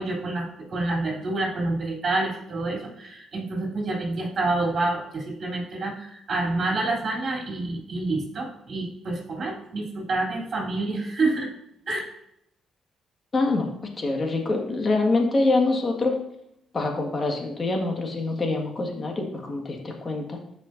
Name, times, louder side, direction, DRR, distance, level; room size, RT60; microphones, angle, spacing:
voice 1, 0.0-11.5 11.9-12.0, right 2 dB, 45° right, -2 dB, 3.2 m, -28 dB
voice 2, 13.3-16.2 16.7-20.4, left 2 dB, 35° left, 2 dB, 1.7 m, -25 dB
12.5 x 5.2 x 2.6 m, 0.78 s
cardioid pair, 90°, 0 cm